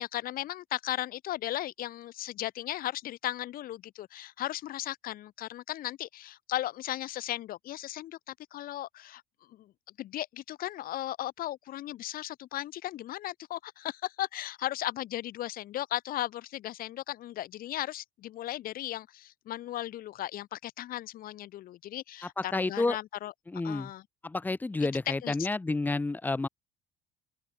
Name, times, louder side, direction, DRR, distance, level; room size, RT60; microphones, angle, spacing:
voice 1, 0.0-9.2 9.5-9.7 10.0-23.3 23.6-24.0 25.1-25.5, left 14 dB, 45° left, 3.1 m, -36 dB
voice 2, 22.4-23.0 23.5-23.9 24.2-26.5, left 3 dB, 10° left, 1.6 m, -30 dB
open air
cardioid pair, 170°, 20 cm